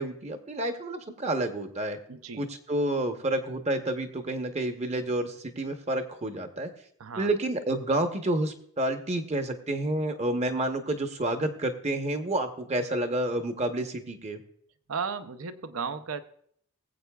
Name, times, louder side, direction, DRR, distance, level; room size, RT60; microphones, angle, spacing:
voice 1, 0.0-2.0 2.4-6.7 7.2-14.4, right 1 dB, 30° right, 6 dB, 0.9 m, -29 dB
voice 2, 2.1-2.5 7.0-7.3 14.9-16.2, right 5 dB, 70° right, 11 dB, 0.6 m, -34 dB
21.5 x 7.9 x 2.3 m, 0.65 s
head